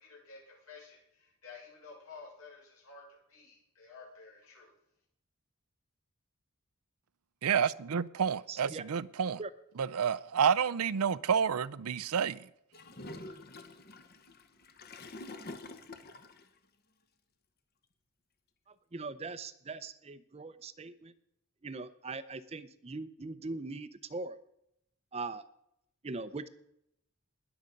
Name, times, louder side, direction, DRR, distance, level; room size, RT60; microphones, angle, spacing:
voice 1, 0.0-4.7, left 4 dB, 75° left, 6.7 m, -52 dB
voice 2, 7.4-9.4 9.8-12.4, right 7 dB, 85° right, 0.5 m, -29 dB
voice 3, 8.5-8.8 9.4-9.5 18.7-21.1 21.6-24.4 25.1-25.4 26.0-26.5, right 3 dB, 30° right, 0.5 m, -41 dB
Gurgling / Toilet flush, 12.7-16.5, left 2 dB, 45° left, 1.0 m, -47 dB
20.0 x 6.9 x 5.2 m
head